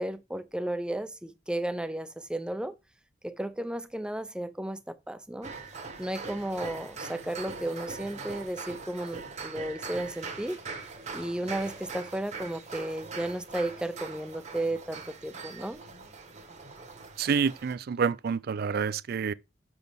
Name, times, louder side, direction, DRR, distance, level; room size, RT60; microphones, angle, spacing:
voice 1, 0.0-2.7 3.2-5.5 6.0-10.6 11.1-15.8, right 1 dB, 5° right, 0.6 m, -34 dB
sound 1, 5.4-17.7, right 4 dB, 40° right, 1.4 m, -42 dB
voice 2, 17.2-19.3, right 6 dB, 55° right, 0.4 m, -28 dB
6.7 x 6.1 x 3.5 m
head